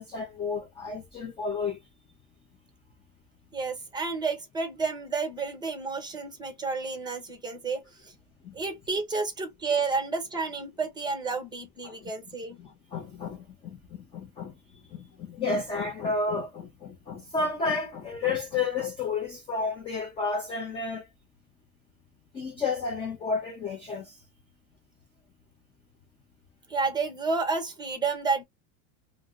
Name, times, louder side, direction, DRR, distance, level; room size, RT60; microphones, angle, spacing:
voice 1, 0.0-1.8 8.4-8.5 11.8-12.1 12.6-14.5 14.9-21.1 22.3-24.2, left 4 dB, 15° left, 0.3 m, -31 dB
voice 2, 3.5-8.1 8.5-12.6 26.7-28.4, right 4 dB, 10° right, 0.8 m, -30 dB
2.5 x 2.0 x 3.5 m
supercardioid pair, 140°, 41 cm